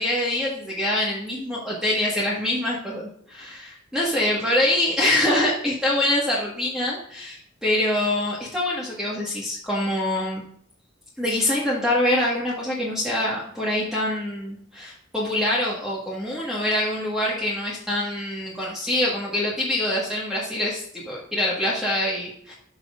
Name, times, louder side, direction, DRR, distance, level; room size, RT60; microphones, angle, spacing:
voice 1, 0.0-10.4 11.2-22.5, left 1 dB, 5° right, -6 dB, 1.7 m, -25 dB
13.0 x 6.2 x 2.6 m, 0.64 s
head